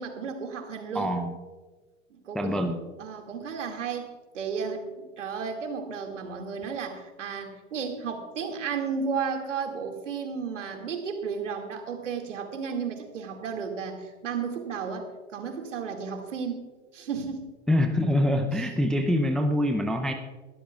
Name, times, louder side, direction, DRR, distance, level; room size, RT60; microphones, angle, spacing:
voice 1, 0.0-1.2 2.2-2.6 3.0-16.6 16.9-17.5 18.5-18.7, right 6 dB, 75° right, 4 dB, 2.3 m, -33 dB
voice 2, 0.9-1.3 2.3-2.8 17.7-20.1, left 1 dB, ahead, 5 dB, 0.4 m, -25 dB
21.0 x 12.5 x 2.4 m, 1.3 s
hypercardioid pair, 105°, 38 cm